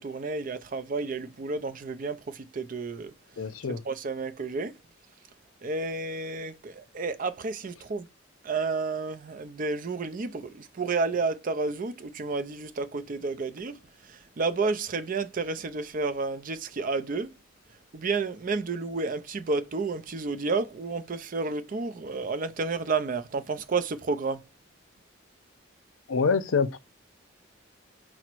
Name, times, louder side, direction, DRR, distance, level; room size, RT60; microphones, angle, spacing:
voice 1, 0.0-3.1 3.9-4.7 5.6-8.1 8.4-13.8 14.1-17.3 17.9-24.4, right 4 dB, 40° right, 0.4 m, -31 dB
voice 2, 3.4-3.8 26.1-26.8, left 5 dB, 80° left, 0.5 m, -25 dB
5.0 x 2.1 x 4.4 m
head